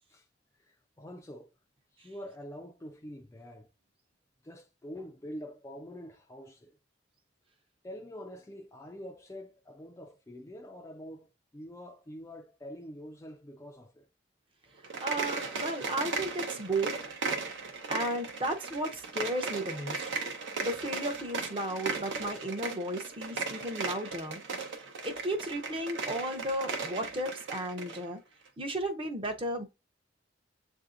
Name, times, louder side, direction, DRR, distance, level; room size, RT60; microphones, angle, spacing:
voice 1, 0.6-1.5 2.0-3.7 4.4-6.7 7.8-14.1, equal, 15° left, 0.3 m, -45 dB
sound 1, 14.8-28.0, right 4 dB, 75° right, 0.8 m, -37 dB
voice 2, 15.0-16.9 17.9-20.0 20.6-24.4 25.0-28.2 28.6-29.6, right 1 dB, 30° right, 0.7 m, -34 dB
7.6 x 2.6 x 2.5 m
head